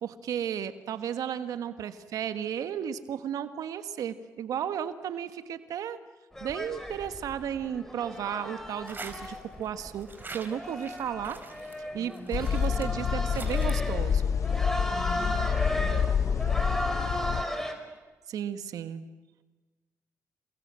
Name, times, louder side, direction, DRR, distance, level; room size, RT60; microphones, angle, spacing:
voice 1, 0.0-6.0 6.4-11.4 11.9-14.3 18.3-19.0, right 9 dB, 80° right, 11 dB, 1.6 m, -34 dB
sound 1, 6.3-17.7, equal, 5° left, 5.1 m, -36 dB
sound 2, 8.9-9.7 10.0-13.7, right 3 dB, 35° right, 4.4 m, -45 dB
voice 2, 11.9-13.3 14.9-16.7, left 1 dB, 35° left, 5 dB, 7.8 m, -45 dB
sound 3, 12.3-17.4, left 7 dB, 60° left, 0.8 m, -27 dB
29.0 x 22.5 x 7.6 m, 1.2 s
cardioid pair, 70°, 6 cm